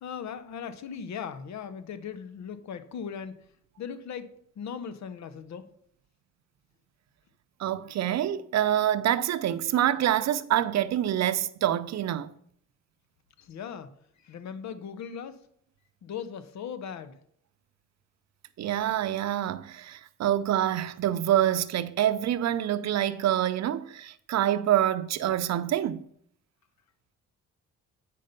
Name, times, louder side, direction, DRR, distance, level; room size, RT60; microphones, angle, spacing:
voice 1, 0.0-3.3 3.8-5.7 13.4-13.9 14.2-15.4 16.0-17.2, left 7 dB, 65° left, 1.0 m, -38 dB
voice 2, 7.6-12.3 18.6-26.0, right 11 dB, 60° right, 0.6 m, -26 dB
8.5 x 5.4 x 5.2 m
cardioid pair, 90°, 30 cm